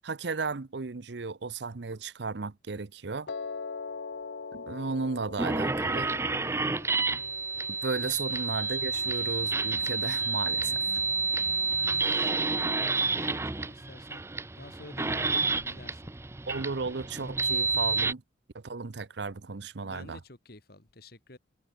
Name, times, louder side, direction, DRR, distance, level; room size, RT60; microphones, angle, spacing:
voice 1, 0.0-3.3 4.5-6.1 7.1-7.2 7.7-10.8 16.5-18.2 18.5-20.2, right 4 dB, 65° right, 0.7 m, -34 dB
Piano, 3.3-9.4, left 4 dB, 75° left, 0.7 m, -42 dB
sound 1, 5.4-18.1, right 4 dB, 15° right, 0.5 m, -29 dB
voice 2, 10.6-11.1 11.8-16.1 19.8-21.4, left 2 dB, 55° left, 2.2 m, -50 dB
head